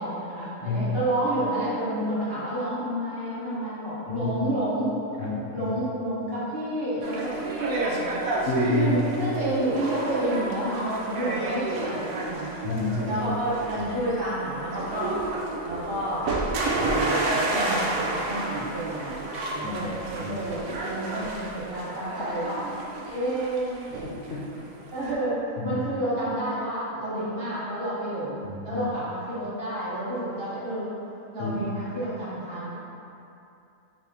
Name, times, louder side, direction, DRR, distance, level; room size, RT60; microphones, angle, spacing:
voice 1, 0.0-4.9 5.5-8.2 8.7-12.5 13.0-22.7 23.1-23.8 24.9-30.9 31.3-32.8, right 1 dB, 45° right, -11 dB, 1.4 m, -30 dB
voice 2, 4.1-4.6 5.2-5.7 8.5-8.9 9.2-9.3 12.6-13.2 19.6-19.7 20.2-20.3 24.0-24.4 25.6-25.8 28.4-28.8 31.4-31.5, left 3 dB, 70° left, -4 dB, 0.9 m, -29 dB
sound 1, 7.0-25.1, right 2 dB, 75° right, 1.0 m, -31 dB
4.9 x 3.6 x 2.7 m, 2.7 s
omnidirectional pair, 1.5 m